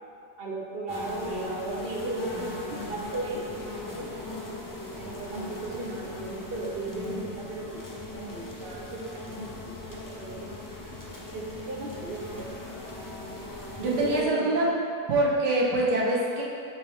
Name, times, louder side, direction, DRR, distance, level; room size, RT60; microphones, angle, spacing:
voice 1, 0.4-4.1 5.0-7.8 8.1-10.5 11.3-12.6 13.8-14.6, right 3 dB, 45° right, -1 dB, 0.8 m, -36 dB
sound 1, 0.9-14.2, left 2 dB, 20° left, 0.5 m, -39 dB
voice 2, 14.0-14.7 15.1-16.4, right 1 dB, 75° right, -4 dB, 1.8 m, -24 dB
8.0 x 6.2 x 3.6 m, 2.4 s
omnidirectional pair, 1.8 m